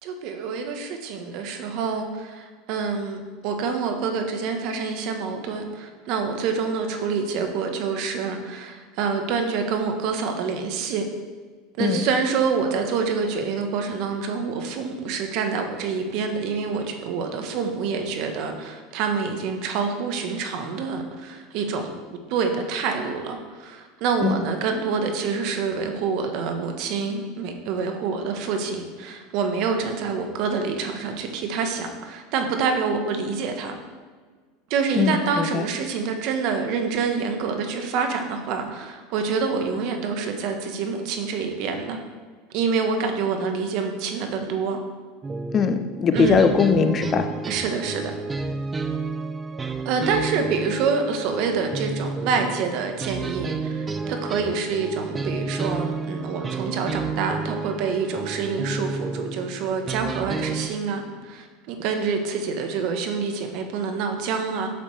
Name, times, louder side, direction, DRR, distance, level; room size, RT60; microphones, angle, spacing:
voice 1, 0.0-11.0 11.8-21.9 22.3-33.7 34.7-42.0 42.5-44.8 46.1-46.5 47.4-48.1 49.8-64.7, right 5 dB, 60° right, 5 dB, 1.1 m, -27 dB
voice 2, 35.0-35.6 45.5-47.3, left 6 dB, 35° left, 8 dB, 0.6 m, -21 dB
sound 1, 45.2-60.7, right 4 dB, 20° right, 0.6 m, -31 dB
8.5 x 7.0 x 3.2 m, 1.5 s
supercardioid pair, 120°, 0 cm